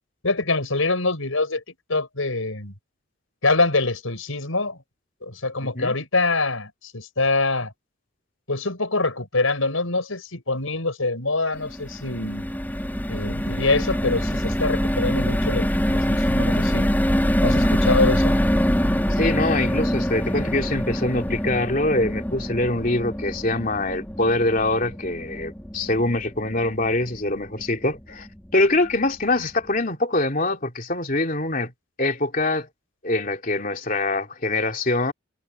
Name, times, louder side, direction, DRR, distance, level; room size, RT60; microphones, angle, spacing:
voice 1, 0.2-2.7 3.4-4.8 5.2-7.7 8.5-12.4 13.1-16.9 17.4-18.3, left 3 dB, 85° left, 5.6 m, -24 dB
voice 2, 5.6-6.0 19.1-28.3 28.5-31.7 32.0-32.7 33.0-35.1, left 2 dB, 40° left, 3.1 m, -24 dB
sound 1, 11.5-27.9 28.3-28.4 28.6-28.9, equal, 10° left, 4.5 m, -24 dB
head